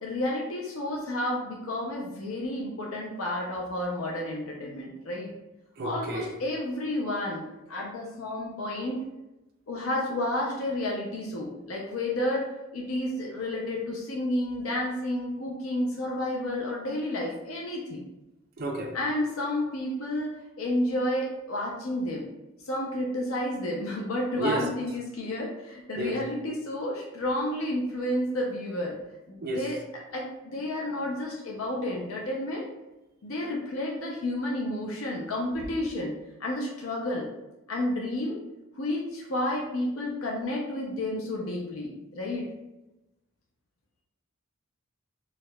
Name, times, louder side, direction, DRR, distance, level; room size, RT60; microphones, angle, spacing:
voice 1, 0.0-5.3 5.8-9.0 9.7-18.1 18.9-22.3 22.7-29.0 29.3-29.8 30.1-32.7 33.2-37.3 37.7-38.4 38.8-42.4, left 1 dB, 80° left, -2 dB, 0.6 m, -31 dB
voice 2, 5.8-6.3 18.6-18.9 24.4-24.7 26.0-26.1 29.4-29.6, right 1 dB, 45° right, 1 dB, 0.5 m, -31 dB
4.6 x 2.3 x 2.2 m, 0.98 s
head